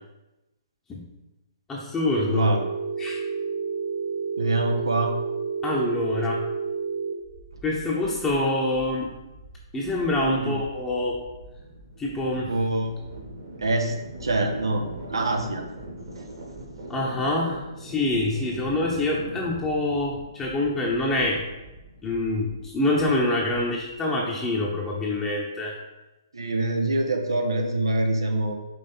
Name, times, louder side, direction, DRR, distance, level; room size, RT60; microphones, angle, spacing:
voice 1, 1.7-2.5 3.0-3.2 5.6-6.4 7.6-9.1 9.7-11.2 12.0-12.5 16.9-21.4 22.0-25.7, left 2 dB, 15° left, -4 dB, 1.0 m, -26 dB
Telephone, 2.1-7.1, right 5 dB, 30° right, 0.9 m, -30 dB
voice 2, 2.3-2.6 4.4-5.2 10.2-10.6 12.3-12.9 13.6-13.9 14.2-14.8 15.1-15.6 26.3-28.5, right 2 dB, 80° right, 4 dB, 0.9 m, -25 dB
sound 1, 7.2-24.2, right 1 dB, 60° right, 2.2 m, -42 dB
5.7 x 3.6 x 5.5 m, 0.98 s
figure-of-eight pair, 130°, 2 cm